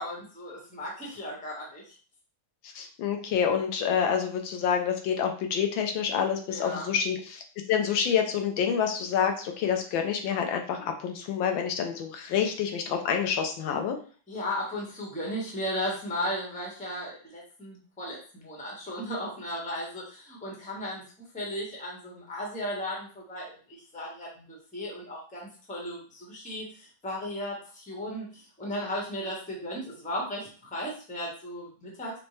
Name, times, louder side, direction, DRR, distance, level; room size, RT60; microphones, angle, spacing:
voice 1, 0.0-1.9 6.5-6.9 14.3-21.0 21.3-23.5 23.9-32.2, equal, 5° left, -3 dB, 0.8 m, -35 dB
voice 2, 2.6-7.4 7.7-14.0, left 7 dB, 85° left, 4 dB, 1.5 m, -27 dB
5.2 x 2.2 x 3.1 m, 0.41 s
omnidirectional pair, 2.1 m